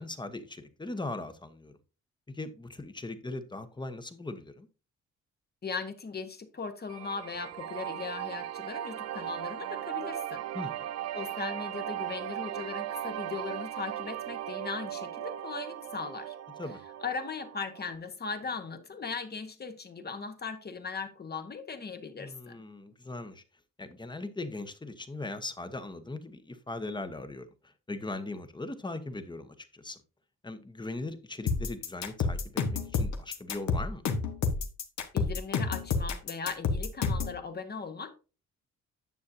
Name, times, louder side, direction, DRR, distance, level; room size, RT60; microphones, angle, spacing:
voice 1, 0.0-1.7 2.3-4.7 10.5-10.9 16.6-16.8 22.2-23.4 23.8-27.5 27.9-30.0 30.4-34.0, left 2 dB, 15° left, 1.1 m, -39 dB
voice 2, 5.6-10.4 11.1-16.4 17.0-22.6 35.1-38.1, left 5 dB, 35° left, 1.3 m, -38 dB
sound 1, 6.9-18.0, right 12 dB, 60° right, 0.5 m, -38 dB
sound 2, 31.5-37.4, left 5 dB, 65° left, 1.3 m, -29 dB
9.5 x 7.0 x 2.7 m
cardioid pair, 90°, 30 cm